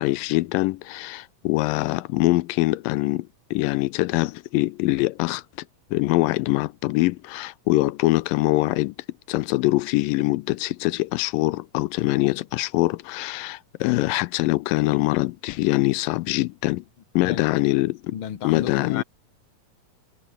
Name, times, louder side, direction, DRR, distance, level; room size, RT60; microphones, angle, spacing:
voice 1, 0.0-5.4 5.9-8.9 9.3-16.8 17.2-18.1 18.4-19.0, left 20 dB, 85° left, 2.3 m, -23 dB
voice 2, 18.1-19.0, left 8 dB, 45° left, 2.3 m, -32 dB
omnidirectional pair, 4.0 m